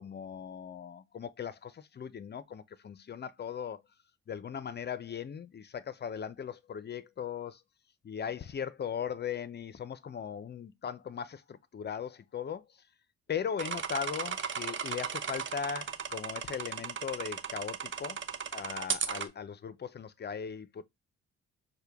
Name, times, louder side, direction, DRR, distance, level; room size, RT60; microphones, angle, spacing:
voice 1, 0.0-3.8 4.3-7.6 8.0-12.7 13.3-18.2 18.5-20.8, left 7 dB, 35° left, 0.5 m, -38 dB
sound 1, 13.6-19.2, right 7 dB, 40° right, 0.7 m, -36 dB
6.4 x 2.2 x 3.4 m
cardioid pair, 90°, 30 cm